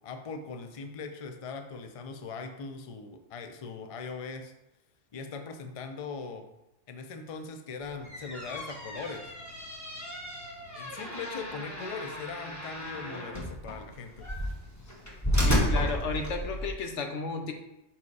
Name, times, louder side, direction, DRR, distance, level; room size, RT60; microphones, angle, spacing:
voice 1, 0.0-4.5 5.1-6.5 6.9-9.4 10.7-14.3, left 4 dB, 40° left, 6 dB, 0.5 m, -40 dB
sound 1, 7.9-16.7, equal, 15° left, 1.3 m, -32 dB
voice 2, 15.4-17.5, left 4 dB, 85° left, 4 dB, 1.2 m, -33 dB
5.6 x 4.7 x 4.7 m, 0.90 s
omnidirectional pair, 1.2 m